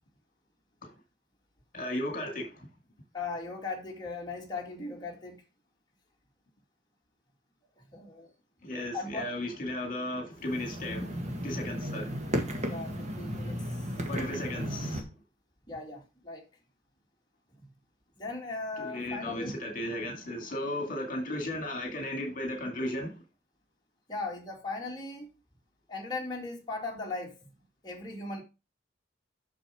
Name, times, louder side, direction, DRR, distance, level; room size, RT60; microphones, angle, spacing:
voice 1, 1.7-2.7 8.6-12.2 14.1-15.0 18.8-23.1, left 1 dB, 50° left, 2.2 m, -35 dB
voice 2, 3.1-5.4 7.9-8.3 8.9-9.3 12.7-13.7 15.7-16.5 18.2-19.5 24.1-25.3 25.9-27.5 27.8-28.4, left 3 dB, 25° left, 2.3 m, -38 dB
sound 1, 10.4-15.0, equal, 40° right, 1.8 m, -34 dB
7.4 x 6.4 x 4.9 m
head